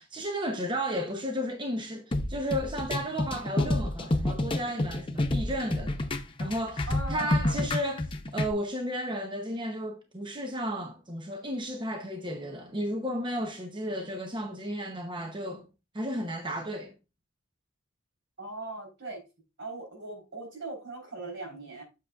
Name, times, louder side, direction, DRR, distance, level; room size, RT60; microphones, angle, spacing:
voice 1, 0.0-6.1 6.4-15.7 15.9-16.9, equal, 25° right, 0.7 m, -33 dB
sound 1, 2.1-8.5, left 1 dB, 25° left, 0.7 m, -29 dB
voice 2, 6.9-7.7 18.4-19.2 19.6-21.8, right 2 dB, 70° right, 3.9 m, -39 dB
7.9 x 6.6 x 2.4 m
head